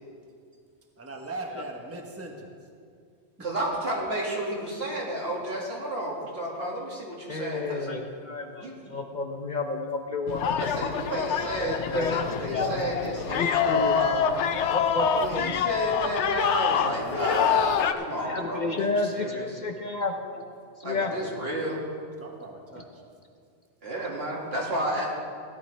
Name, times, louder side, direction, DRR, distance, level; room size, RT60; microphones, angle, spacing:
voice 1, 1.0-2.5 3.4-3.5 22.2-23.0, right 2 dB, 15° right, 1 dB, 1.1 m, -39 dB
voice 2, 3.4-7.9 8.6-8.7 10.6-14.3 15.1-19.6 20.8-21.8 23.8-25.1, right 1 dB, 65° right, -4 dB, 2.5 m, -32 dB
voice 3, 7.3-10.7 11.4-13.9 14.4-15.5 17.9-20.4 20.8-21.1, left 3 dB, 45° left, 4 dB, 0.8 m, -31 dB
sound 1, 10.3-17.9, left 7 dB, 90° left, 0.9 m, -26 dB
17.0 x 11.0 x 3.3 m, 2.2 s
omnidirectional pair, 1.1 m